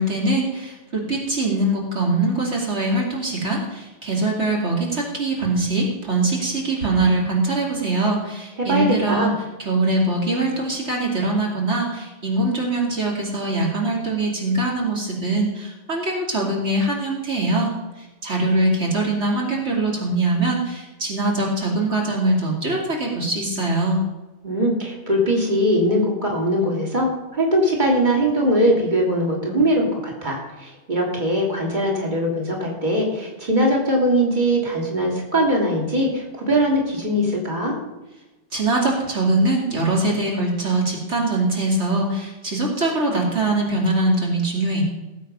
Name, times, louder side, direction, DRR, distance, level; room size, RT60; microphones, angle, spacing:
voice 1, 0.0-9.3 9.6-17.7 18.0-24.0 38.5-44.8, right 2 dB, 75° right, -2 dB, 3.1 m, -22 dB
voice 2, 8.6-9.4 24.4-37.8, equal, 40° right, -2 dB, 3.2 m, -21 dB
18.5 x 8.4 x 5.4 m, 1.1 s
omnidirectional pair, 1.2 m